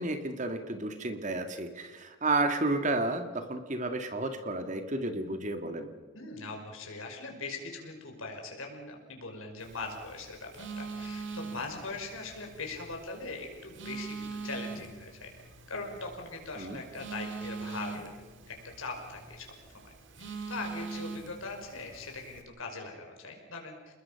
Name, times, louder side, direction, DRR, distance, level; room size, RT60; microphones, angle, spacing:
voice 1, 0.0-5.9 16.6-16.8, right 2 dB, 35° right, 7 dB, 1.9 m, -32 dB
voice 2, 6.1-15.3 15.7-18.1 18.5-19.5 19.8-19.9 20.2-23.7, left 3 dB, 85° left, 2 dB, 5.4 m, -41 dB
Telephone, 9.6-22.4, right 4 dB, 65° right, 2.5 m, -43 dB
29.0 x 21.0 x 5.8 m, 1.4 s
head